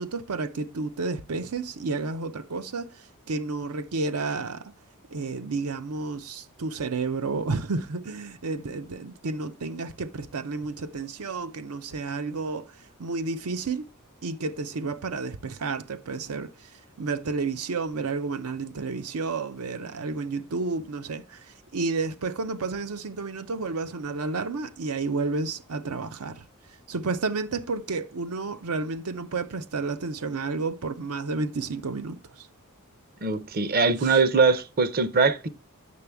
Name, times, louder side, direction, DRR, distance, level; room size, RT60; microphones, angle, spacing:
voice 1, 0.0-4.7 5.1-13.9 14.2-16.7 17.0-26.4 26.9-32.5 34.0-34.1, right 3 dB, 80° right, 0.7 m, -31 dB
voice 2, 33.2-35.5, right 4 dB, 40° right, 0.7 m, -22 dB
8.5 x 6.8 x 3.4 m
head